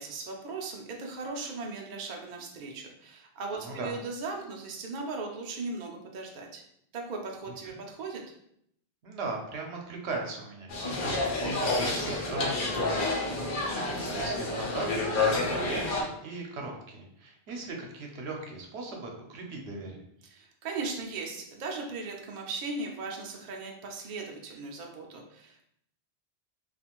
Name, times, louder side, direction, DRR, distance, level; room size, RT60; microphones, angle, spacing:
voice 1, 0.0-6.6 6.9-8.3 20.2-25.7, right 3 dB, 55° right, 1 dB, 0.6 m, -38 dB
voice 2, 3.6-3.9 7.7-7.8 9.0-14.9 15.1-20.0, right 3 dB, 80° right, 1 dB, 0.9 m, -38 dB
sound 1, 10.7-16.0, left 2 dB, 55° left, 0.7 m, -29 dB
2.4 x 2.4 x 2.9 m, 0.72 s
omnidirectional pair, 1.1 m